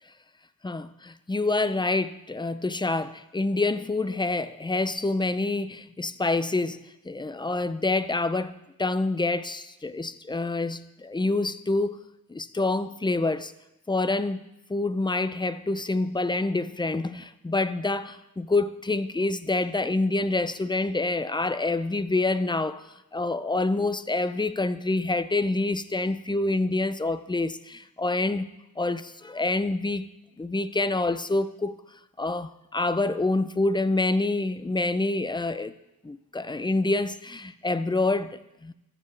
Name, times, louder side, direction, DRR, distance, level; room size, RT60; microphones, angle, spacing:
voice 1, 0.6-6.8 7.0-12.0 12.3-13.5 13.9-22.9 23.1-30.1 30.4-31.7 32.2-35.7 36.0-38.7, left 2 dB, 15° left, 13 dB, 0.4 m, -27 dB
14.5 x 7.6 x 3.2 m, 0.91 s
wide cardioid pair, 75°, 36 cm